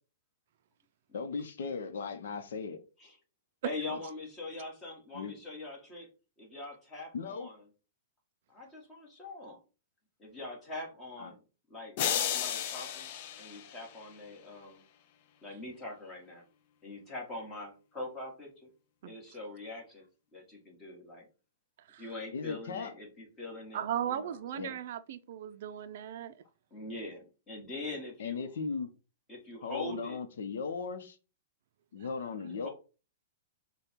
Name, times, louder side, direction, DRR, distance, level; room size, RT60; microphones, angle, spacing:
voice 1, 1.1-2.8 3.9-4.0 5.1-5.3 7.1-7.5 11.2-11.3 22.3-22.9 24.6-24.7 28.2-28.9 29.6-31.2 31.9-32.7, left 5 dB, 75° left, 0.7 m, -37 dB
voice 2, 3.6-6.1 6.4-7.6 8.5-9.6 10.2-11.4 11.7-13.1 13.4-14.8 15.4-16.4 16.8-18.7 19.0-21.2 22.0-24.8 26.7-28.5 29.3-30.2 32.4-32.7, left 2 dB, 15° left, 1.5 m, -43 dB
sound 1, 12.0-14.3, left 9 dB, 45° left, 0.5 m, -34 dB
voice 3, 23.7-26.3, right 10 dB, 55° right, 0.4 m, -37 dB
5.1 x 2.3 x 4.4 m
hypercardioid pair, 155°, 0 cm